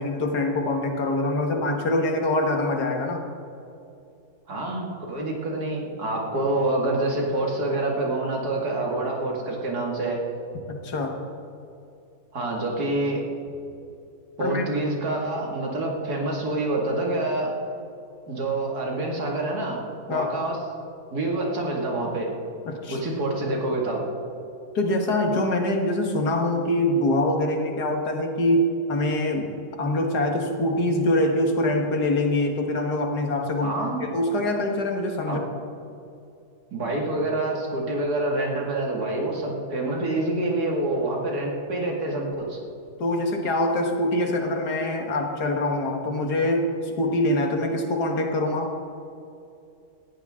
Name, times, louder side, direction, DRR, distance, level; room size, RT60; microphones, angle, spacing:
voice 1, 0.0-3.2 10.7-11.2 14.4-14.7 20.1-20.3 22.7-23.0 24.7-33.7 34.0-35.4 43.0-48.7, left 1 dB, 90° left, 3 dB, 2.2 m, -24 dB
voice 2, 4.5-10.2 12.3-13.2 14.4-17.5 18.3-19.8 20.1-20.6 21.1-22.3 22.9-24.0 33.6-34.0 35.3-35.4 36.7-42.6, right 2 dB, 75° right, -1 dB, 2.8 m, -27 dB
19.0 x 14.0 x 3.8 m, 2.6 s
omnidirectional pair, 1.7 m